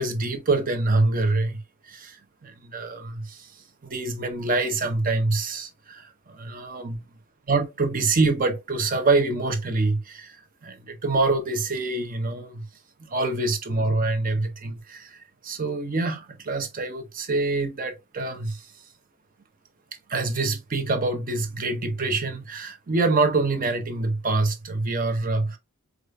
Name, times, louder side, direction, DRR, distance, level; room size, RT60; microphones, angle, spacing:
voice 1, 0.0-3.5 3.8-7.0 7.5-12.7 13.0-18.7 20.1-25.6, right 3 dB, 40° right, 0.7 m, -26 dB
4.8 x 2.4 x 2.3 m
head